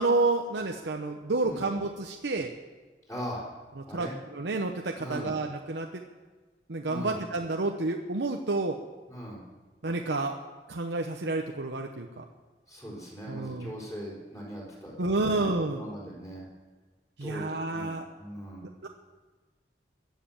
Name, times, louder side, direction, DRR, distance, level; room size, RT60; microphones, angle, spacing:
voice 1, 0.0-2.5 3.8-6.0 6.7-8.8 9.8-10.3 10.7-12.2 13.3-13.7 15.0-15.9 17.2-18.1 18.8-18.9, right 2 dB, 90° right, 3 dB, 0.9 m, -30 dB
voice 2, 3.1-3.4 3.9-4.1 5.0-5.3 6.9-7.2 9.1-9.4 12.7-14.9 15.2-16.5 17.2-17.9 18.2-18.6, equal, 20° left, -4 dB, 4.4 m, -40 dB
21.5 x 7.6 x 7.2 m, 1.3 s
head